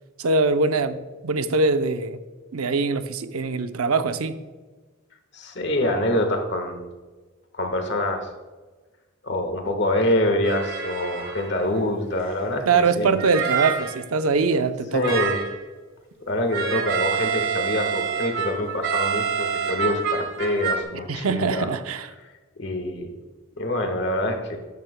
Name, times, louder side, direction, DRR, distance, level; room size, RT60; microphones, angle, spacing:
voice 1, 0.2-2.2 2.5-4.3 12.6-15.2 21.1-22.1, right 4 dB, 90° right, 10 dB, 0.6 m, -23 dB
voice 2, 5.3-6.9 7.5-8.3 9.2-13.2 14.9-15.4 16.3-21.7 22.6-23.1 23.6-24.6, left 1 dB, 55° left, 5 dB, 1.4 m, -25 dB
sound 1, 10.4-11.8 12.2-12.3 13.2-14.0 15.0-15.6 16.5-20.8, right 6 dB, 65° right, 1.6 m, -27 dB
13.0 x 10.5 x 2.2 m, 1.3 s
head